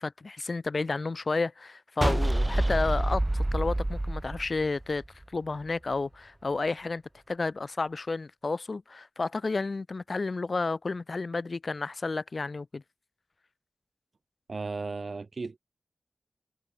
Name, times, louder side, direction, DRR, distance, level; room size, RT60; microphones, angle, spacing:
voice 1, 0.0-5.0 5.3-7.0 7.3-12.8, left 3 dB, 55° left, 4.8 m, -31 dB
sound 1, 2.0-5.2, right 1 dB, 20° right, 1.9 m, -27 dB
voice 2, 14.5-15.6, right 4 dB, 60° right, 5.4 m, -35 dB
wide cardioid pair, 70°, 0 cm